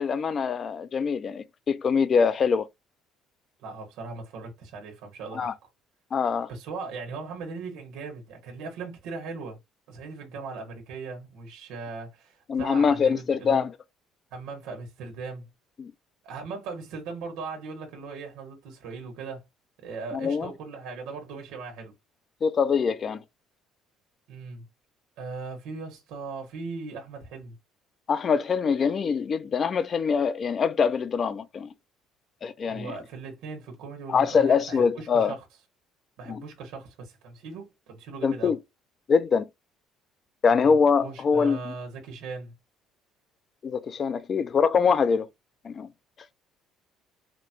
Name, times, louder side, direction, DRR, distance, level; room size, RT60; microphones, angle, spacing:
voice 1, 0.0-2.7 5.3-5.5 6.1-6.5 12.5-13.7 15.8-15.9 20.1-20.5 22.4-23.2 28.1-31.7 32.4-32.9 34.1-35.3 36.3-36.4 38.2-38.6 39.1-39.5 40.4-41.7 43.6-45.3 45.6-45.9, left 6 dB, 30° left, 0.4 m, -24 dB
voice 2, 3.6-5.6 6.5-9.6 9.9-13.6 14.3-15.5 16.2-19.4 19.8-21.9 24.3-24.6 25.2-27.6 32.6-35.4 36.2-38.5 40.5-40.7 41.0-42.5, right 4 dB, 80° right, 1.4 m, -39 dB
5.0 x 2.2 x 2.9 m
cardioid pair, 170°, 0 cm